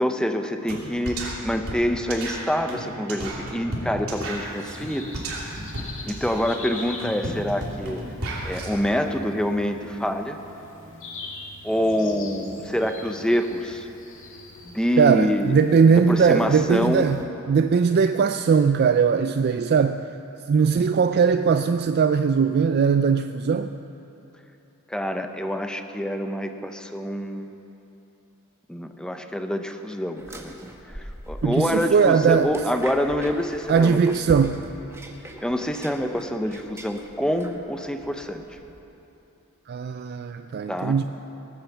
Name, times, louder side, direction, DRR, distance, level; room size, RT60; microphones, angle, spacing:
voice 1, 0.0-5.2 6.0-8.0 8.4-10.4 11.6-13.9 14.6-15.5 15.9-17.1 24.9-27.6 28.7-30.5 30.9-34.0 35.4-38.6 40.7-40.9, equal, 5° left, 6 dB, 0.7 m, -26 dB
sound 1, 0.7-0.8 1.0-8.7, right 1 dB, 70° right, 2.9 m, -33 dB
sound 2, 4.1-17.2, left 2 dB, 60° left, 2.1 m, -43 dB
voice 2, 15.0-20.1 20.5-23.7 31.4-32.5 33.7-34.7 39.7-41.0, right 6 dB, 45° right, 9 dB, 0.3 m, -20 dB
sound 3, 30.2-38.8, equal, 10° right, 1.1 m, -41 dB
18.5 x 8.8 x 7.2 m, 3.0 s
head